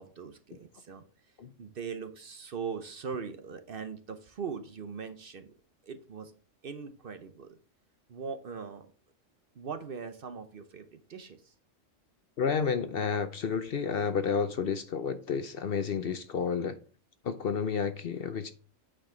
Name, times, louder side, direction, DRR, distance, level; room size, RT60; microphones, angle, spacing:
voice 1, 0.0-5.5 5.8-6.3 6.6-7.6 8.1-8.9 9.5-11.5, right 6 dB, 55° right, 0.8 m, -41 dB
voice 2, 12.4-16.8 17.2-18.5, left 6 dB, 55° left, 0.8 m, -30 dB
8.7 x 4.7 x 3.8 m
omnidirectional pair, 1.3 m